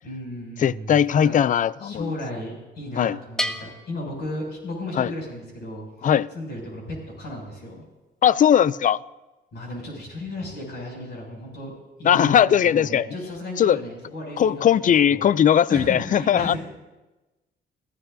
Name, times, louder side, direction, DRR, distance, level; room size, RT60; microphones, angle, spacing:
voice 1, 0.0-0.9 1.2-1.4 1.8-6.1 6.3-7.8 9.5-11.7 12.0-15.3 15.7-16.6, left 1 dB, 55° left, 6.6 m, -35 dB
voice 2, 0.6-2.1 3.0-3.2 5.0-5.1 6.0-6.3 8.2-9.0 12.0-13.1 13.6-13.8 14.4-16.5, left 9 dB, 40° left, 0.4 m, -19 dB
Bell, 3.4-5.1, left 1 dB, 5° left, 0.9 m, -33 dB
30.0 x 15.0 x 2.7 m
cardioid pair, 90°, 20 cm